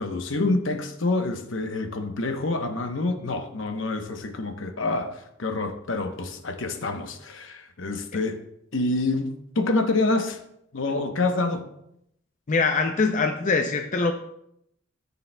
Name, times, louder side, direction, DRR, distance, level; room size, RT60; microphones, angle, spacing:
voice 1, 0.0-8.4 8.7-10.4 10.7-11.6, left 2 dB, 65° left, 7 dB, 0.9 m, -27 dB
voice 2, 12.5-14.1, left 4 dB, 40° left, 5 dB, 0.5 m, -23 dB
13.5 x 6.9 x 2.2 m, 0.77 s
head